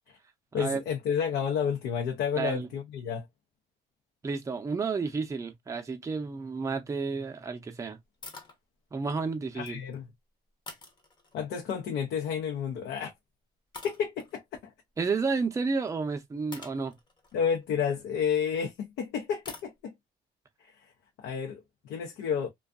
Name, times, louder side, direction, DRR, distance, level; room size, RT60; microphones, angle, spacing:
voice 1, 0.5-3.2 9.5-10.1 11.3-13.1 13.8-14.4 17.3-19.9 20.6-20.7 21.2-22.5, left 7 dB, 80° left, 0.6 m, -30 dB
voice 2, 2.4-2.7 4.2-8.0 8.9-9.8 15.0-17.0, right 4 dB, 20° right, 0.6 m, -31 dB
sound 1, 8.2-8.6 9.4-10.0 10.7-11.5 12.8-13.1 13.7-14.3 15.9-16.0 16.5-18.6 19.5-19.7, left 3 dB, 25° left, 0.8 m, -47 dB
2.5 x 2.3 x 2.3 m
cardioid pair, 110°, 17 cm